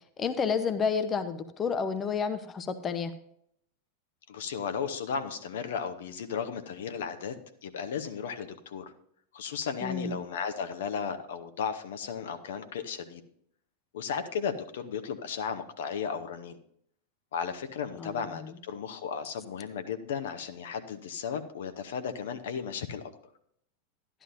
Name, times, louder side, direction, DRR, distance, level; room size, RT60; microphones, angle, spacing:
voice 1, 0.2-3.1 9.8-10.2 18.0-18.2, left 6 dB, 25° left, 11 dB, 0.7 m, -30 dB
voice 2, 4.3-7.3 7.6-8.8 9.3-13.2 13.9-16.6 17.3-23.0, left 6 dB, 60° left, 9 dB, 0.8 m, -35 dB
12.5 x 11.0 x 2.6 m, 0.69 s
figure-of-eight pair, 90°, 0 cm